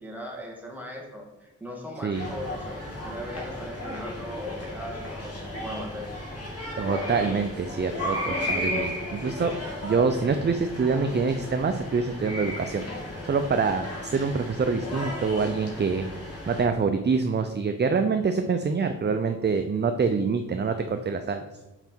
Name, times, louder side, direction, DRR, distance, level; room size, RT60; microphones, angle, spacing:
voice 1, 0.0-6.0, equal, 5° right, -2 dB, 2.3 m, -39 dB
sound 1, 2.1-16.7, left 1 dB, 45° left, 2.4 m, -34 dB
voice 2, 6.8-9.5 9.8-12.9 13.2-16.0 16.5-21.4, right 5 dB, 35° right, 7 dB, 0.5 m, -25 dB
5.9 x 5.0 x 4.5 m, 1.1 s
cardioid pair, 55°, 32 cm